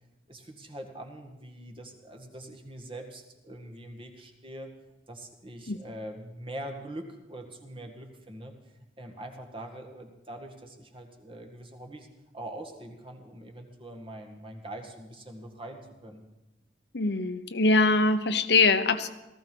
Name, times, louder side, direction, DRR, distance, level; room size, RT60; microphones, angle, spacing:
voice 1, 0.3-4.7 5.1-8.5 9.0-12.1 12.3-16.2, right 1 dB, 30° right, 4 dB, 1.9 m, -43 dB
voice 2, 16.9-19.1, left 3 dB, 65° left, 9 dB, 1.0 m, -23 dB
18.5 x 14.0 x 5.4 m, 1.0 s
head